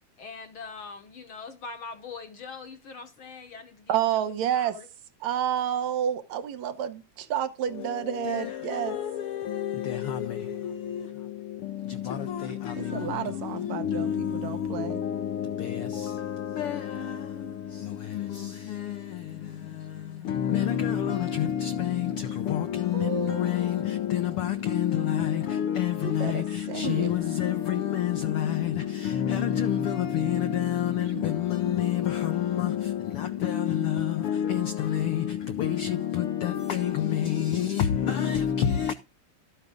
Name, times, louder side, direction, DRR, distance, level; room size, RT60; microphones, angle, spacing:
voice 1, 0.2-4.9, left 4 dB, 55° left, 1.6 m, -42 dB
voice 2, 3.9-4.8 5.2-9.0 12.9-15.0 22.9-23.7 26.0-27.1 31.1-31.8, right 10 dB, 75° right, 2.2 m, -30 dB
voice 3, 7.7-38.9, left 10 dB, 75° left, 1.3 m, -28 dB
13.0 x 9.2 x 3.6 m
omnidirectional pair, 3.5 m